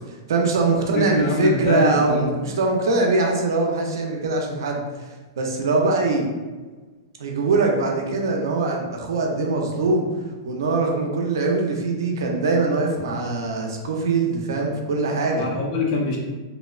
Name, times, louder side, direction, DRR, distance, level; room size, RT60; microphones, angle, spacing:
voice 1, 0.1-5.0 5.4-6.3 7.2-10.1 10.4-15.4, right 3 dB, 80° right, 1 dB, 0.5 m, -22 dB
voice 2, 0.9-2.5 15.4-16.2, left 2 dB, 35° left, -1 dB, 0.5 m, -24 dB
2.7 x 2.1 x 2.3 m, 1.3 s
supercardioid pair, 160°, 2 cm